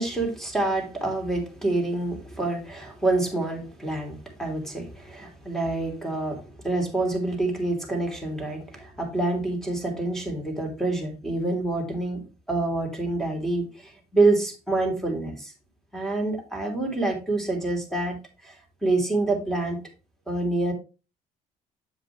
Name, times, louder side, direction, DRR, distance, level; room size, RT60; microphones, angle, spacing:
voice 1, 0.0-12.2 12.5-15.5 15.9-18.5 18.8-19.8 20.3-20.7, right 2 dB, ahead, 3.1 m, -27 dB
7.8 x 7.5 x 3.1 m
cardioid pair, 110°, 17 cm